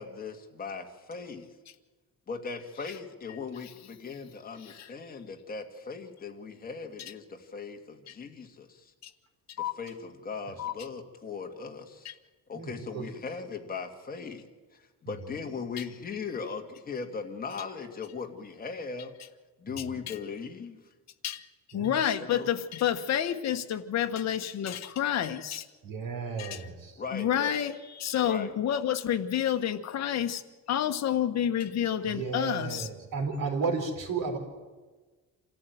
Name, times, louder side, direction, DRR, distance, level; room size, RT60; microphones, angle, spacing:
voice 1, 0.0-1.5 2.3-8.9 9.6-12.1 12.5-14.5 14.7-19.1 19.6-20.8 22.2-22.5 27.0-27.5 28.2-28.6, left 5 dB, 25° left, 3 dB, 2.1 m, -39 dB
voice 2, 12.5-13.1 15.1-15.3 19.8-19.9 21.7-21.9 25.8-27.0 32.1-34.4, right 4 dB, 65° right, 4 dB, 4.7 m, -33 dB
voice 3, 19.8-20.1 21.2-25.7 26.4-26.6 27.1-30.4 30.7-32.9, left 10 dB, 50° left, 7 dB, 1.3 m, -29 dB
27.0 x 14.5 x 9.3 m, 1.3 s
cardioid pair, 180°, 35 cm